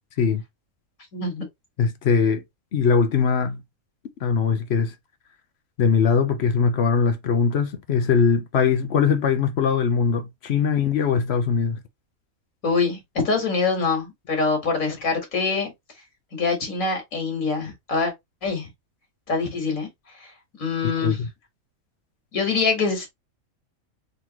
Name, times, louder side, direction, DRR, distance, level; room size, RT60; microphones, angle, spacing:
voice 1, 1.1-1.4 12.6-13.0 13.2-15.7 16.3-18.1 18.4-18.7 19.3-19.9 20.2-20.3 20.6-21.2 22.3-23.1, left 4 dB, 75° left, 2.1 m, -24 dB
voice 2, 1.8-2.4 2.7-3.6 4.2-4.9 5.8-11.8 20.8-21.3, left 6 dB, 55° left, 0.8 m, -21 dB
4.0 x 3.1 x 2.9 m
omnidirectional pair, 1.5 m